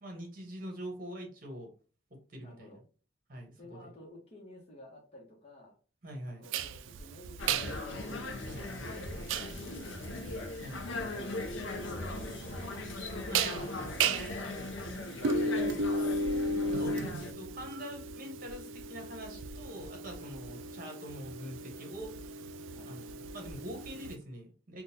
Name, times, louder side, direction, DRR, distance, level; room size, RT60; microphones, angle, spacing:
voice 1, 0.0-1.7 2.1-2.8 3.3-3.9 6.0-6.4 8.5-8.7 10.6-10.8 13.3-13.8 15.2-22.2 22.9-24.8, equal, 45° right, 2 dB, 1.1 m, -45 dB
voice 2, 2.4-2.8 3.6-5.7 6.3-8.7 9.1-10.1 10.8-12.8 13.4-14.6 20.5-20.7 22.7-22.9, left 1 dB, 35° left, -3 dB, 0.9 m, -53 dB
sound 1, 6.5-24.1, right 3 dB, 80° right, 0.3 m, -36 dB
sound 2, 7.4-17.3, left 2 dB, 75° left, 0.5 m, -39 dB
3.7 x 2.3 x 2.7 m, 0.37 s
head